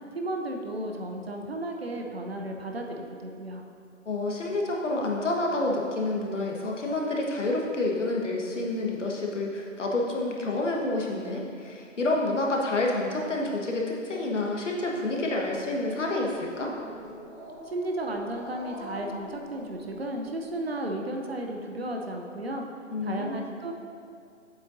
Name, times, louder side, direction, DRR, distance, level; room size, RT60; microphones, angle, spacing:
voice 1, 0.1-3.6 17.6-22.6 23.0-23.7, right 1 dB, 50° right, 2 dB, 0.8 m, -34 dB
voice 2, 4.0-16.7 22.9-23.4, left 2 dB, 65° left, -1 dB, 1.4 m, -28 dB
Growling, 15.3-20.5, equal, ahead, 1.0 m, -45 dB
8.2 x 7.9 x 2.7 m, 2.5 s
hypercardioid pair, 170°, 39 cm